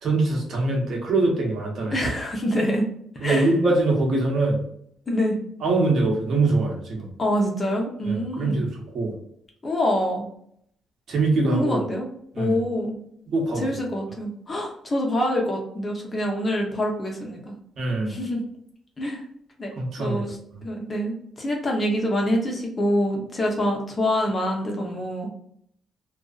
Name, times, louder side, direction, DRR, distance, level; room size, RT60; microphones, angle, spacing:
voice 1, 0.0-1.9 3.2-4.6 5.6-7.1 8.0-8.7 8.9-9.1 11.1-11.8 12.3-12.6 13.3-13.6 17.8-18.1 19.8-20.2, right 2 dB, 60° right, -1 dB, 1.0 m, -23 dB
voice 2, 1.9-2.9 3.1-3.5 5.1-5.4 7.2-8.6 9.6-10.2 11.5-12.1 12.4-13.0 13.6-17.5 18.1-18.4 19.0-19.2 19.6-19.7 20.0-20.4 20.6-25.3, equal, 30° left, 0 dB, 0.8 m, -25 dB
2.5 x 2.3 x 2.4 m, 0.69 s
cardioid pair, 90°, 0 cm